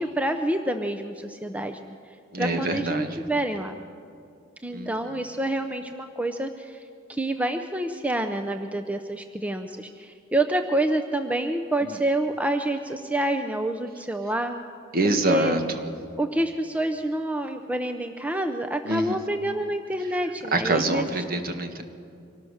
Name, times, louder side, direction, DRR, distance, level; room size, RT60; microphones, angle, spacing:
voice 1, 0.0-1.9 2.4-3.7 4.6-6.8 7.1-14.5 15.3-15.6 16.2-21.1, right 1 dB, 5° right, 6 dB, 0.6 m, -27 dB
voice 2, 2.3-3.2 4.7-4.9 11.8-12.0 14.9-15.6 18.8-19.2 20.5-21.8, right 2 dB, 45° right, 6 dB, 1.6 m, -25 dB
24.5 x 18.0 x 6.5 m, 2.4 s
head